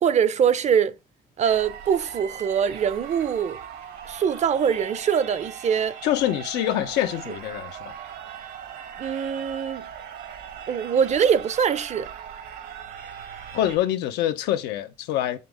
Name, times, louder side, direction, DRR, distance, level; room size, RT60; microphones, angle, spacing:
voice 1, 0.0-0.9 1.4-3.6 4.1-5.9 9.0-9.9 10.7-12.1, right 7 dB, 45° right, 0.6 m, -23 dB
sound 1, 1.5-13.8, right 9 dB, 80° right, 1.8 m, -39 dB
voice 2, 6.0-7.9 13.5-15.4, left 12 dB, 90° left, 0.8 m, -25 dB
7.1 x 5.8 x 3.5 m
cardioid pair, 110°, 17 cm